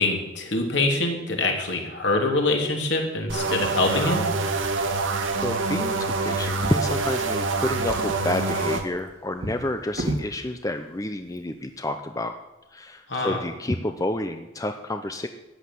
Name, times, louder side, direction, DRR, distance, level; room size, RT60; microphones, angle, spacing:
voice 1, 0.0-4.3 13.1-13.4, left 2 dB, 65° left, 2 dB, 3.2 m, -24 dB
sound 1, 3.3-8.8, right 3 dB, 90° right, 1.9 m, -26 dB
voice 2, 5.4-12.3 12.7-15.3, left 1 dB, 15° left, 7 dB, 0.7 m, -29 dB
Drawer open or close, 6.4-7.4 7.7-10.3 11.2-11.4 11.8-11.9, right 1 dB, 50° right, 1.9 m, -34 dB
14.0 x 10.5 x 7.8 m, 1.0 s
head